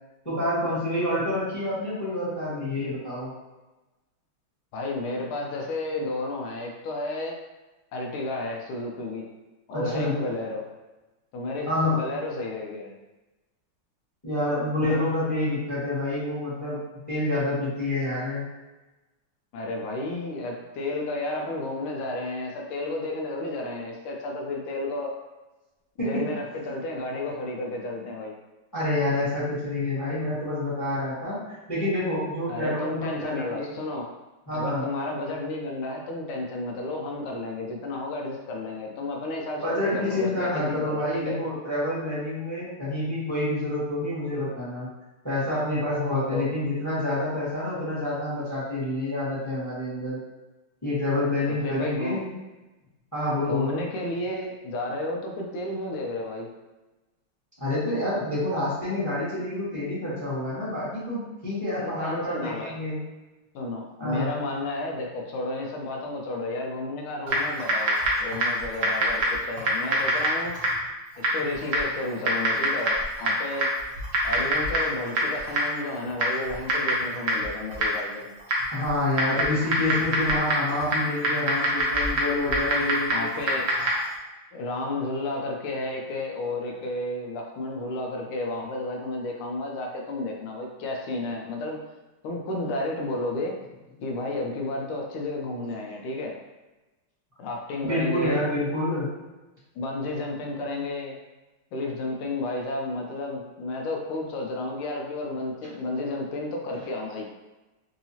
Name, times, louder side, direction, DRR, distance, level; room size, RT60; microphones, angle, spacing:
voice 1, 0.2-3.3 9.7-10.2 11.7-12.0 14.2-16.8 17.1-18.4 26.0-26.3 28.7-33.7 34.5-34.8 39.6-44.9 45.2-50.2 50.8-52.3 53.1-53.8 57.6-63.0 64.0-64.3 78.7-83.3 97.8-99.1, left 1 dB, 10° left, -9 dB, 1.0 m, -28 dB
voice 2, 4.7-7.4 7.9-9.3 9.7-10.7 11.3-12.9 19.5-25.1 26.0-28.3 32.5-34.1 34.5-41.4 46.3-46.5 51.5-52.2 53.5-56.5 61.8-62.8 63.5-70.6 71.3-73.7 74.2-78.3 83.1-83.7 84.5-91.8 92.2-93.5 94.0-96.4 97.4-98.4 99.7-101.2 101.7-107.3, left 2 dB, 80° left, 1 dB, 1.5 m, -32 dB
Typing, 67.3-84.1, right 1 dB, 60° right, 0.8 m, -26 dB
3.9 x 2.8 x 2.8 m, 1.1 s
omnidirectional pair, 2.3 m